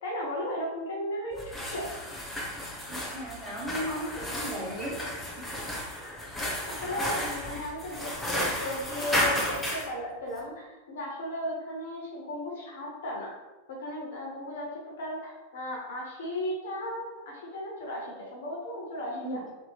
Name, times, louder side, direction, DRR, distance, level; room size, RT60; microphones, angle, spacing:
voice 1, 0.0-1.4 1.7-1.9 6.7-13.3 13.7-19.4, left 1 dB, 60° left, -2 dB, 0.6 m, -35 dB
sound 1, 1.3-9.9, left 1 dB, 5° left, 0.6 m, -33 dB
voice 2, 2.9-5.0 19.1-19.5, equal, 10° right, -7 dB, 1.3 m, -36 dB
2.8 x 2.7 x 2.2 m, 1.1 s
figure-of-eight pair, 90°, 0 cm